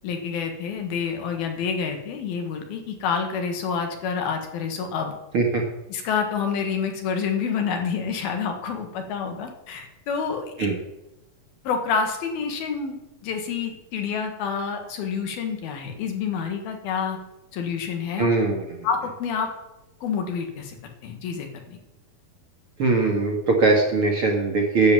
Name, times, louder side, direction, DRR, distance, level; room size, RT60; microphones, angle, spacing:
voice 1, 0.0-5.1 5.9-10.5 11.7-17.2 17.5-18.3 18.8-19.5 20.0-20.8 21.0-21.8, left 6 dB, 85° left, 4 dB, 3.5 m, -28 dB
voice 2, 18.2-18.9 22.8-24.9, right 3 dB, 50° right, 0 dB, 1.7 m, -21 dB
10.5 x 8.1 x 7.4 m, 0.94 s
omnidirectional pair, 4.2 m